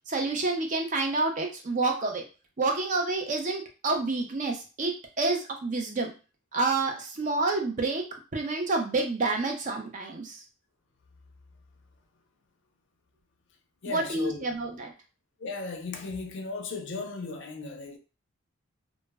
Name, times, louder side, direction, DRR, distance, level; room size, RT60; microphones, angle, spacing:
voice 1, 0.1-2.2 2.6-6.1 6.5-8.0 8.3-10.4 13.9-14.9, right 3 dB, 35° right, 0.4 m, -28 dB
voice 2, 13.8-14.4 15.4-18.0, left 3 dB, 55° left, 0.4 m, -36 dB
2.1 x 2.0 x 3.3 m
head